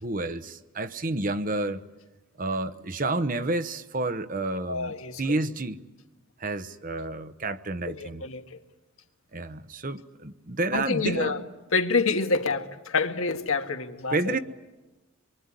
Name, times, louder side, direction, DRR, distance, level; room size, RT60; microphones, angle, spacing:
voice 1, 0.0-1.8 2.4-5.8 6.4-8.2 9.3-11.4 14.1-14.4, right 2 dB, 40° right, 1.0 m, -30 dB
voice 2, 4.7-5.4 7.9-8.6 10.7-11.4 11.7-14.4, left 4 dB, 75° left, 1.9 m, -27 dB
26.5 x 23.0 x 9.8 m
head